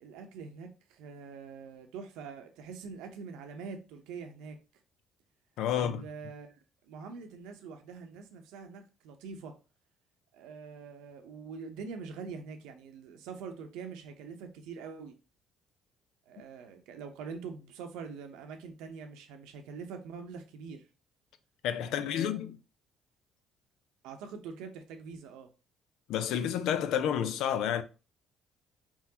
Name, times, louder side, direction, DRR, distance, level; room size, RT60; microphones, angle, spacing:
voice 1, 0.0-4.6 5.7-6.5 6.8-9.5 10.3-15.1 16.3-20.8 21.9-22.5 24.0-25.5, right 5 dB, 85° right, 0.8 m, -44 dB
voice 2, 5.6-6.1 21.6-22.6 26.1-27.8, left 9 dB, 80° left, 0.5 m, -30 dB
4.4 x 3.7 x 2.8 m
supercardioid pair, 80°, 0 cm